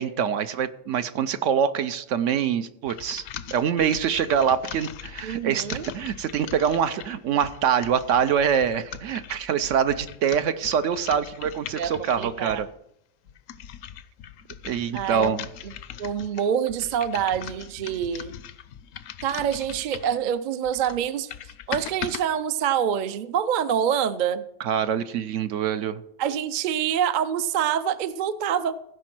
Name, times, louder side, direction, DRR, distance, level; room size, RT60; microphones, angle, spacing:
voice 1, 0.0-3.2 3.5-12.7 14.6-15.5 24.6-26.0, right 8 dB, 75° right, 11 dB, 1.0 m, -25 dB
sound 1, 2.9-12.7 13.3-20.2 20.6-22.2, left 9 dB, 85° left, 1.0 m, -40 dB
voice 2, 5.2-5.9 11.8-12.6 14.9-15.3 15.6-15.7 16.0-18.3 19.2-21.3 21.7-24.4 26.2-28.8, right 9 dB, 55° right, 13 dB, 0.6 m, -26 dB
16.0 x 5.3 x 6.0 m, 0.76 s
omnidirectional pair, 1.3 m